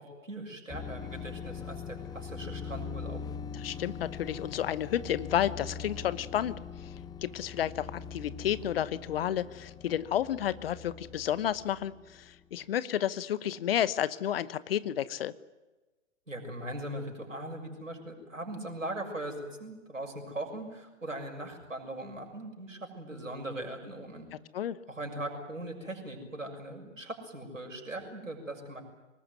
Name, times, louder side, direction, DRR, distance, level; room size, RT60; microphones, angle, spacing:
voice 1, 0.0-3.2 16.3-24.3 24.9-28.8, right 1 dB, 85° right, 2 dB, 6.6 m, -40 dB
sound 1, 0.7-12.4, left 6 dB, 10° left, 1.1 m, -42 dB
voice 2, 3.5-6.9 7.2-15.3 24.5-24.8, left 10 dB, 50° left, 17 dB, 1.1 m, -31 dB
24.5 x 20.0 x 9.5 m, 1.2 s
figure-of-eight pair, 110°, 38 cm